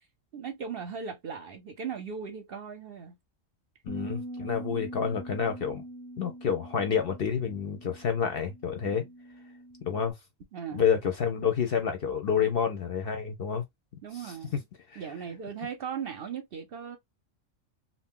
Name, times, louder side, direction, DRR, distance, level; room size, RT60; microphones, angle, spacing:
voice 1, 0.3-3.2 8.8-9.1 10.5-10.9 14.0-14.6 15.0-17.0, right 7 dB, 55° right, 0.7 m, -38 dB
voice 2, 3.9-5.8 6.2-9.0 9.8-10.1 10.7-13.6 14.2-14.3 14.9-15.0, left 7 dB, 60° left, 0.7 m, -28 dB
Bass guitar, 3.9-10.1, right 1 dB, 10° left, 0.6 m, -43 dB
2.6 x 2.1 x 3.5 m
omnidirectional pair, 1.3 m